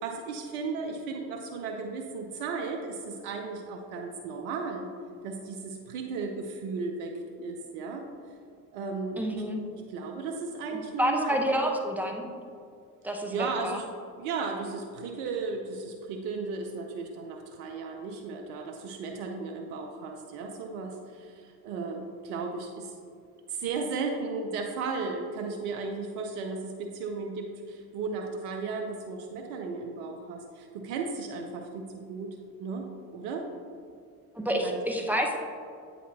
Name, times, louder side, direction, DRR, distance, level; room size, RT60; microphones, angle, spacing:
voice 1, 0.0-4.9 5.2-8.1 8.7-9.4 9.7-11.4 13.3-13.9 14.2-22.9 23.5-32.3 32.6-33.5 34.6-34.8, right 4 dB, 75° right, 3 dB, 0.7 m, -35 dB
voice 2, 9.2-9.6 10.7-12.3 13.0-13.8 34.3-35.4, equal, 5° right, 1 dB, 0.8 m, -29 dB
8.2 x 4.2 x 2.8 m, 2.2 s
hypercardioid pair, 60°, 43 cm